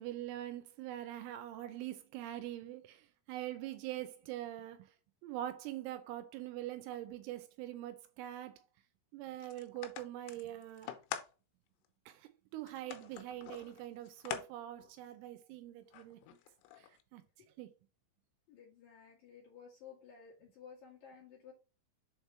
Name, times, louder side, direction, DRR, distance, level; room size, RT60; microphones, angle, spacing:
voice 1, 0.0-4.9 5.2-8.7 9.1-10.9 12.1-16.4 16.8-17.2 17.6-17.7, right 13 dB, 85° right, 3.0 m, -44 dB
sound 1, 9.4-11.3 11.9-12.0 12.7-14.5 14.8-14.9 15.9-17.0, left 10 dB, 85° left, 3.4 m, -45 dB
voice 2, 18.5-21.5, left 7 dB, 60° left, 2.7 m, -55 dB
7.2 x 3.4 x 4.3 m
omnidirectional pair, 5.8 m